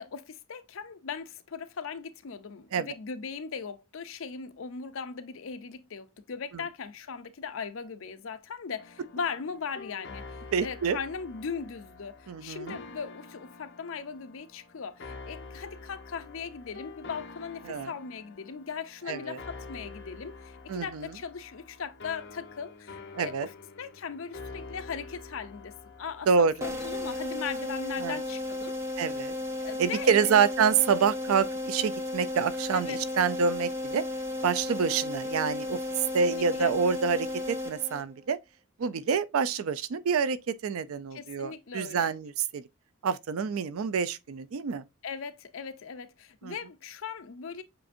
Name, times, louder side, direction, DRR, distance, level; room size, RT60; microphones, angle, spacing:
voice 1, 0.0-28.8 29.6-30.4 32.7-33.0 36.0-36.7 41.1-42.1 45.0-47.6, left 6 dB, 70° left, 0.5 m, -39 dB
sound 1, 8.8-26.7, left 4 dB, 55° left, 0.9 m, -47 dB
voice 2, 10.5-11.0 12.3-12.8 17.6-17.9 19.1-19.4 20.7-21.1 23.1-23.5 26.3-26.7 28.0-28.2 29.0-29.3 29.8-34.0 34.4-38.4 38.8-42.6 43.0-44.8 46.4-46.6, right 6 dB, 80° right, 0.4 m, -27 dB
sound 2, 26.6-38.3, left 1 dB, 10° right, 0.6 m, -34 dB
7.5 x 2.5 x 2.5 m
head